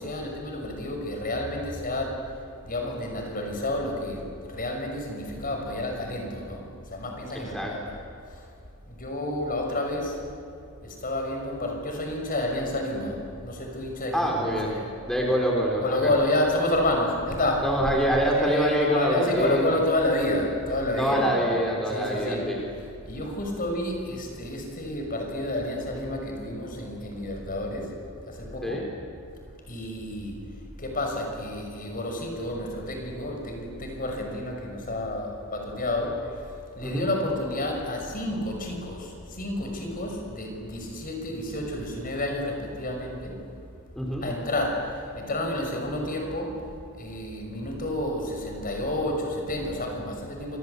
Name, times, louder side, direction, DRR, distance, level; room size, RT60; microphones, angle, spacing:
voice 1, 0.0-7.8 8.3-8.5 8.9-10.2 10.8-14.9 15.8-17.9 18.3-28.8 29.7-43.4 44.2-50.6, left 1 dB, 40° left, 2 dB, 6.1 m, -30 dB
voice 2, 14.1-14.7 15.1-16.1 17.6-19.8 21.0-22.6 28.6-28.8 36.8-37.1 44.0-44.3, equal, ahead, -2 dB, 3.9 m, -25 dB
28.0 x 25.5 x 8.3 m, 2.4 s
head